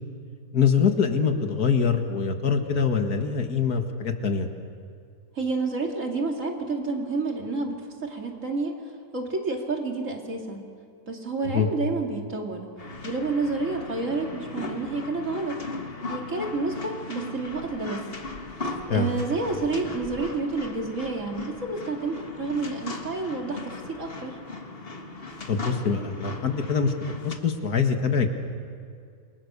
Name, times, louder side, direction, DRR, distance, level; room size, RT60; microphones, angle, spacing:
voice 1, 0.5-4.5 11.5-11.7 18.9-19.1 25.5-26.9 27.2-28.3, left 6 dB, 80° left, 5 dB, 2.2 m, -24 dB
voice 2, 5.3-8.7 9.1-10.6 11.1-12.7 13.0-15.6 16.1-18.0 18.9-24.4, right 3 dB, 55° right, 1 dB, 2.9 m, -29 dB
sound 1, 12.8-27.4, left 3 dB, 40° left, 1.9 m, -38 dB
28.5 x 23.5 x 6.9 m, 2.3 s
omnidirectional pair, 1.6 m